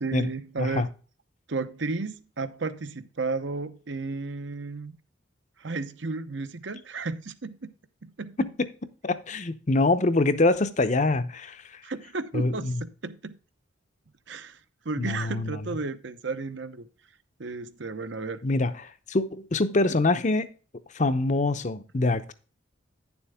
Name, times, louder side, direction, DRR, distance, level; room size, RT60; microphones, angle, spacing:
voice 1, 0.0-0.9 1.5-5.0 5.6-7.7 8.0-8.5 11.8-13.4 14.3-14.6 14.8-16.9 17.4-18.4, right 3 dB, 65° right, 0.8 m, -33 dB
voice 2, 9.0-11.8 12.3-12.8 15.0-15.6 18.4-20.5 20.9-22.3, left 2 dB, 40° left, 0.7 m, -25 dB
10.0 x 7.1 x 3.6 m
head